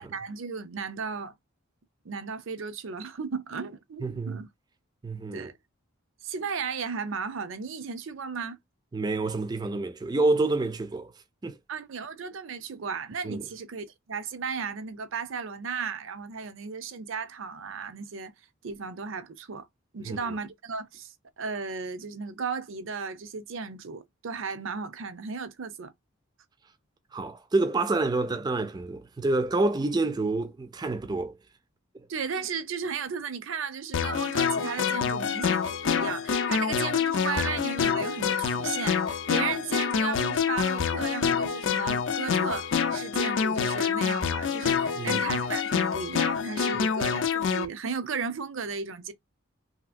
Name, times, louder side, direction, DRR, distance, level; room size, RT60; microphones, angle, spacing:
voice 1, 0.0-1.3 2.0-4.5 5.3-5.5 6.2-8.6 11.7-18.3 18.6-19.7 19.9-25.9 32.1-49.1, right 5 dB, 70° right, 0.6 m, -35 dB
voice 2, 4.0-4.4 5.0-5.5 8.9-11.1 11.4-11.6 13.2-13.5 20.1-20.2 27.1-31.4 31.9-32.1 45.0-45.2 46.7-46.9, right 2 dB, 20° right, 0.3 m, -28 dB
sound 1, 33.9-47.7, left 6 dB, 60° left, 0.4 m, -27 dB
2.8 x 2.8 x 2.4 m
head